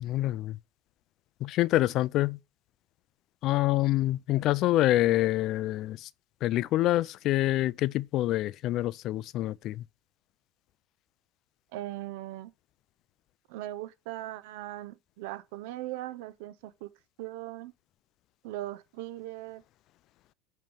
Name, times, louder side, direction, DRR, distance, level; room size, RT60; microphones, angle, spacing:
voice 1, 0.0-0.6 1.4-2.4 3.4-6.1 6.4-9.8, left 15 dB, 50° left, 0.3 m, -26 dB
voice 2, 11.7-12.5 13.5-16.9 17.2-17.7 18.4-19.6, right 15 dB, 75° right, 0.6 m, -39 dB
9.0 x 3.1 x 5.1 m
supercardioid pair, 125°, 0 cm